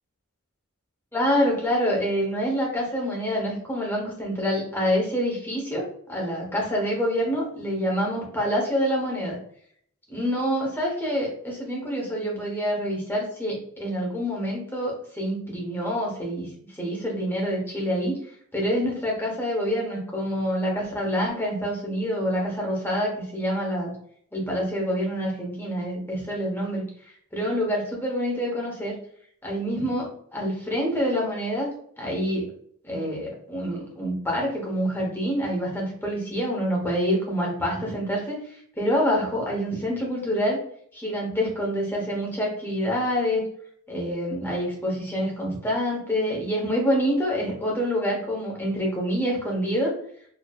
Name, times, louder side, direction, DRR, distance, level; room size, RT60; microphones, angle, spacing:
voice 1, 1.1-5.8 6.1-9.4 10.1-18.2 18.5-23.9 24.3-29.0 29.4-31.7 32.0-32.5 32.8-40.6 40.9-43.4 43.9-49.9, equal, 10° left, -2 dB, 1.2 m, -26 dB
4.6 x 3.1 x 2.4 m, 0.63 s
head